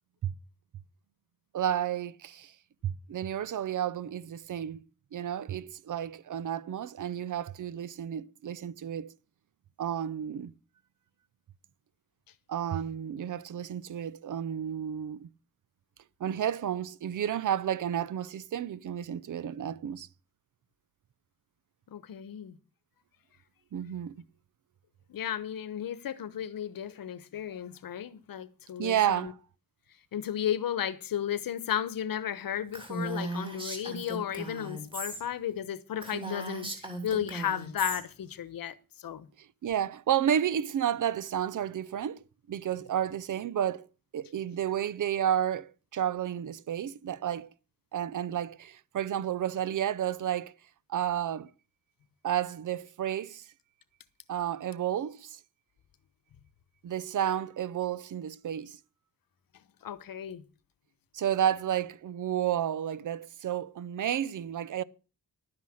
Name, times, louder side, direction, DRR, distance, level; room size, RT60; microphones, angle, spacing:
voice 1, 1.5-2.5 2.8-4.8 5.1-9.1 9.8-10.5 12.5-15.3 16.2-20.1 23.7-24.2 28.8-29.4 39.6-43.9 44.1-47.5 47.9-50.5 50.9-51.5 52.2-53.4 54.3-55.4 56.8-58.8 61.1-64.8, right 10 dB, 65° right, 0.7 m, -31 dB
voice 2, 21.9-22.5 25.1-29.3 30.1-36.7 37.0-39.3 59.8-60.4, left 10 dB, 80° left, 1.1 m, -34 dB
Female speech woman speaking, 32.7-35.2 35.5-35.6 36.0-38.0, right 2 dB, 15° right, 3.0 m, -37 dB
11.5 x 9.7 x 6.3 m
wide cardioid pair, 180°, 34 cm